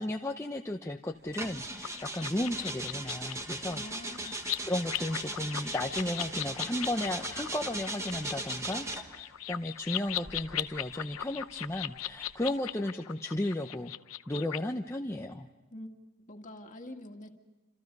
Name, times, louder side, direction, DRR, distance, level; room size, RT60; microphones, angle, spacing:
voice 1, 0.0-3.8 4.2-4.3 4.6-13.9 14.3-15.5, left 1 dB, 15° left, 2 dB, 0.7 m, -34 dB
sound 1, 1.3-9.2 10.1-12.6, right 2 dB, 15° right, 1.3 m, -39 dB
sound 2, 1.8-14.6, left 12 dB, 80° left, 0.7 m, -39 dB
voice 2, 3.7-4.4 15.7-15.9 16.2-17.3, left 1 dB, 35° left, 4 dB, 2.0 m, -45 dB
28.0 x 27.5 x 5.4 m, 1.2 s
head